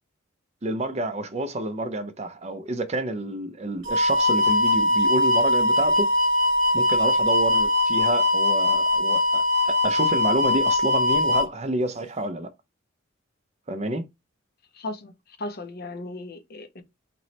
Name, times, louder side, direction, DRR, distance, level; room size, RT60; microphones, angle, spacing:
voice 1, 0.6-6.1 6.7-12.5 13.7-14.0, right 1 dB, 30° right, 0.5 m, -29 dB
sound 1, 3.8-11.5, left 1 dB, 65° right, 1.1 m, -21 dB
voice 2, 14.7-16.8, left 2 dB, 50° left, 0.7 m, -36 dB
3.0 x 3.0 x 4.0 m
head